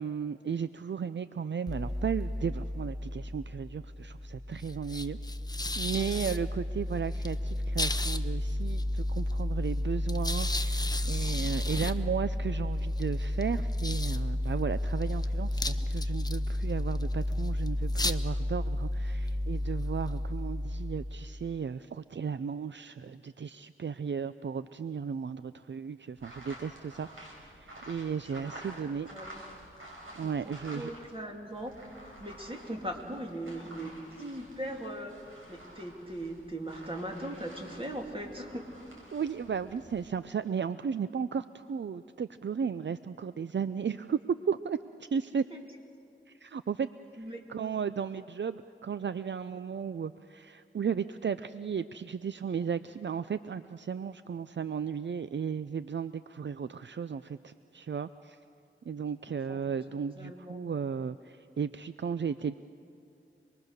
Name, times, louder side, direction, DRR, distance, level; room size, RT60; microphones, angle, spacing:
voice 1, 0.0-5.2 5.8-29.1 30.2-30.9 39.1-44.2 44.5-45.4 46.3-58.4 58.9-62.5, right 6 dB, 60° right, 13 dB, 0.5 m, -35 dB
sound 1, 1.7-21.6, left 1 dB, 20° left, 0.8 m, -32 dB
sound 2, 26.2-31.2 31.5-40.0, right 1 dB, 85° right, 5.2 m, -50 dB
voice 2, 28.2-29.5 30.2-31.7 32.2-33.9 34.2-35.2 35.5-38.7 47.2-47.4 59.3-59.6 59.9-60.6, right 1 dB, 25° right, 1 dB, 3.0 m, -40 dB
26.5 x 21.0 x 6.6 m, 2.5 s
wide cardioid pair, 55°, 21 cm